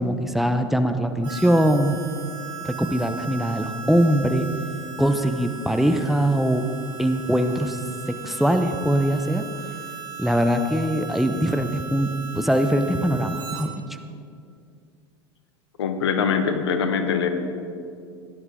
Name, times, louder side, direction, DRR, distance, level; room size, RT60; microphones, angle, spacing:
voice 1, 0.0-2.0 2.6-4.5 5.0-6.6 7.0-7.8 8.1-9.4 10.2-12.1 12.3-13.7, equal, ahead, 7 dB, 0.8 m, -22 dB
Harmonica, 1.2-13.7, right 6 dB, 35° right, 3.6 m, -37 dB
voice 2, 15.8-17.3, left 6 dB, 75° left, 8 dB, 1.1 m, -23 dB
16.5 x 11.0 x 3.8 m, 2.4 s
hypercardioid pair, 80°, 14 cm